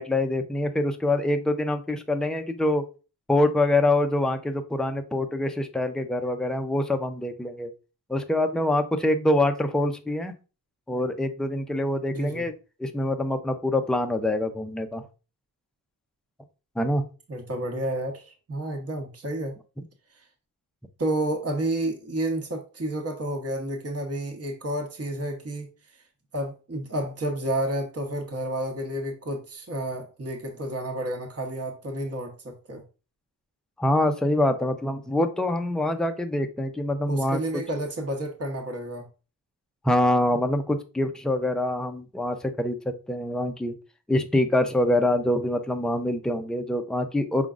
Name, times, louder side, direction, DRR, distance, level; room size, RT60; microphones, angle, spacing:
voice 1, 0.0-2.8 3.3-7.7 8.1-10.3 10.9-12.5 12.8-15.0 16.8-17.0 33.8-37.4 39.8-43.7 44.1-47.5, left 1 dB, ahead, 0.5 m, -25 dB
voice 2, 12.1-12.4 17.3-19.5 21.0-25.7 26.3-32.8 37.1-39.1, right 1 dB, 35° right, 1.0 m, -30 dB
5.0 x 3.7 x 2.4 m
wide cardioid pair, 80°, 42 cm